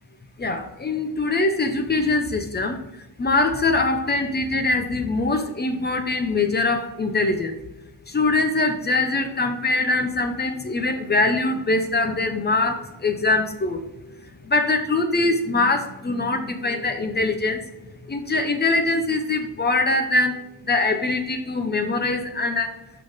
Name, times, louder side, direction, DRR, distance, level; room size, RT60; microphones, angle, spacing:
voice 1, 0.4-2.8 3.2-7.7 8.1-13.8 14.4-17.6 18.0-20.4 20.6-22.7, left 2 dB, 25° left, 6 dB, 0.8 m, -23 dB
5.9 x 5.6 x 5.0 m, 0.91 s
cardioid pair, 130°, 40 cm